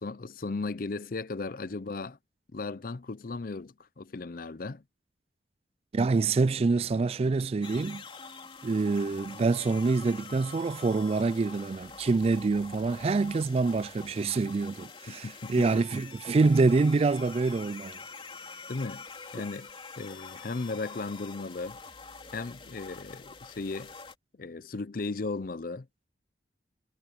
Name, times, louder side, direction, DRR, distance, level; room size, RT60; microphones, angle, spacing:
voice 1, 0.0-2.2 2.5-4.8 15.1-15.8 18.7-19.0 19.3-19.7 20.0-21.8 22.3-23.9 24.4-25.9, left 3 dB, 50° left, 0.6 m, -36 dB
voice 2, 5.9-8.0 8.6-18.0, right 3 dB, 35° right, 0.3 m, -26 dB
sound 1, 7.6-24.1, left 4 dB, 30° left, 3.2 m, -46 dB
head